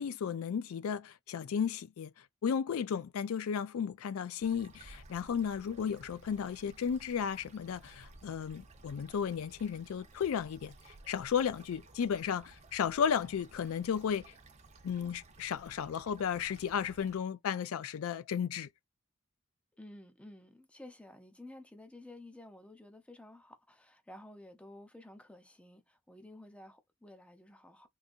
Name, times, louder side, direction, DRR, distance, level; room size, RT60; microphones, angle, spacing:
voice 1, 0.0-2.1 2.4-10.7 11.1-14.3 14.8-18.7, left 7 dB, 85° left, 0.4 m, -34 dB
sound 1, 4.4-17.2, right 2 dB, 30° right, 0.7 m, -57 dB
voice 2, 19.8-27.9, left 1 dB, 5° left, 0.5 m, -53 dB
3.8 x 2.7 x 2.5 m
head